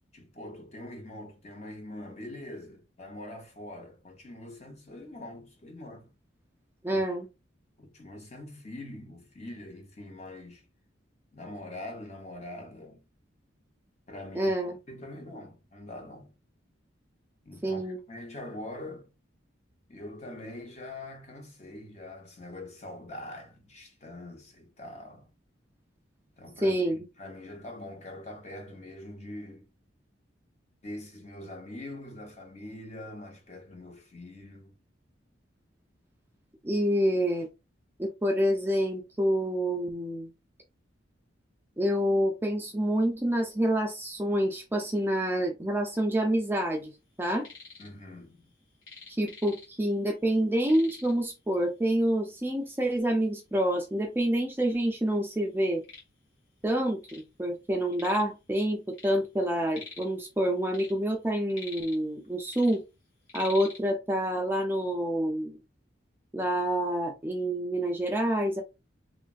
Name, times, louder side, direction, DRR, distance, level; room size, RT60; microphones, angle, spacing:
voice 1, 0.1-6.1 6.9-7.0 7.8-10.6 11.3-13.0 14.1-16.3 17.4-19.1 19.9-25.3 26.4-29.7 30.8-34.8 47.8-48.4, left 1 dB, 35° left, 0.8 m, -43 dB
voice 2, 6.8-7.3 14.3-14.8 17.6-18.0 26.6-27.0 36.6-37.5 38.0-40.3 41.8-46.9 47.2-47.5 49.1-55.8 56.6-62.8 63.3-65.6 66.3-68.6, right 1 dB, 10° right, 0.4 m, -27 dB
sound 1, 47.2-47.9 48.2-50.0 50.3-50.4 50.6-51.3 52.1-52.2 52.7-52.8 53.5-53.6 53.9-54.8 55.2-57.3 57.6-58.4 58.7-60.2 60.6-62.2 62.5-63.8, left 4 dB, 75° left, 1.3 m, -47 dB
3.1 x 2.4 x 2.4 m
head